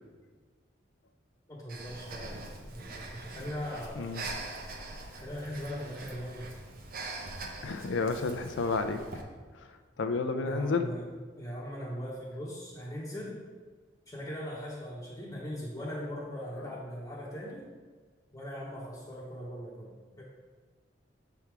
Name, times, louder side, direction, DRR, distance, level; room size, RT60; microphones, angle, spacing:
voice 1, 1.5-4.2 5.1-6.5 10.4-11.1 11.4-13.4 14.1-17.7 18.3-20.2, equal, 20° left, -7 dB, 0.8 m, -40 dB
Breathing, 1.7-9.2, right 2 dB, 50° right, 0.7 m, -43 dB
voice 2, 7.6-9.0 9.5-9.7 10.0-10.9 16.6-16.7, left 4 dB, 80° left, 8 dB, 0.5 m, -31 dB
6.9 x 3.5 x 4.6 m, 1.5 s
head